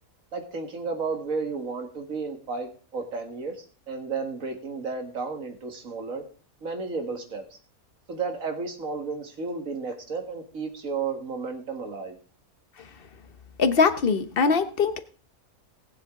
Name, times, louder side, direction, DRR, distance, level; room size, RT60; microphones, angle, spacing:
voice 1, 0.3-6.2 6.6-7.4 8.1-12.2, right 4 dB, 65° right, 5 dB, 2.2 m, -33 dB
voice 2, 13.6-15.0, left 5 dB, 45° left, 10 dB, 1.1 m, -22 dB
18.5 x 7.6 x 3.7 m, 0.40 s
omnidirectional pair, 1.5 m